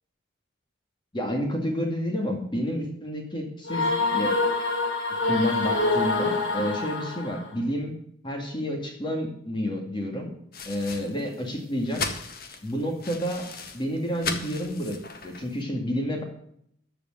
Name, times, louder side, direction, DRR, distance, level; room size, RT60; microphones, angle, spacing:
voice 1, 1.1-4.4 5.3-7.9 8.2-10.3 10.7-12.0 12.6-13.5 13.7-16.2, equal, 25° left, 2 dB, 2.2 m, -29 dB
sound 1, 3.7-7.5, left 3 dB, 70° left, 3.0 m, -26 dB
sound 2, 10.5-15.6, left 4 dB, 50° left, 1.6 m, -37 dB
14.0 x 5.1 x 9.0 m, 0.69 s
head